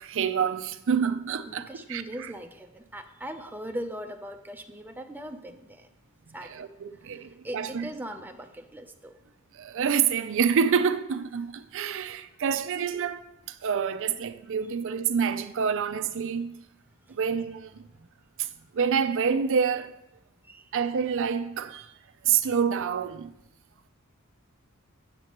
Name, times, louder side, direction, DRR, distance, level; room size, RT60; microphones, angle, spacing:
voice 1, 0.0-2.3 6.5-7.9 9.5-13.2 13.5-16.6 17.1-17.8 18.4-18.5 18.7-19.9 20.7-21.9 22.2-23.3, right 7 dB, 60° right, 0.5 m, -27 dB
voice 2, 1.4-5.9 6.3-6.5 7.0-9.1 18.0-18.1 20.4-20.7, equal, 10° right, 0.5 m, -40 dB
9.7 x 7.5 x 3.0 m
head